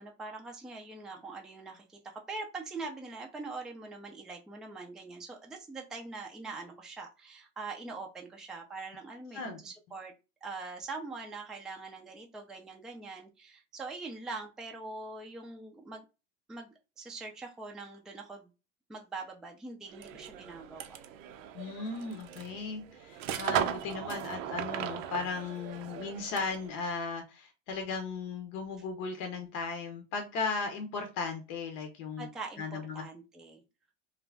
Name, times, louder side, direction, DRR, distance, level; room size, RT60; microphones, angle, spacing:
voice 1, 0.0-10.1 10.4-16.0 16.5-18.5 18.9-21.0 32.2-33.6, right 3 dB, ahead, 1 dB, 0.3 m, -43 dB
sound 1, 19.9-26.7, right 10 dB, 85° right, 0.5 m, -37 dB
voice 2, 21.5-32.3 32.6-33.0, left 4 dB, 55° left, 5 dB, 0.8 m, -36 dB
2.5 x 2.0 x 3.2 m, 0.29 s
hypercardioid pair, 95°, 37 cm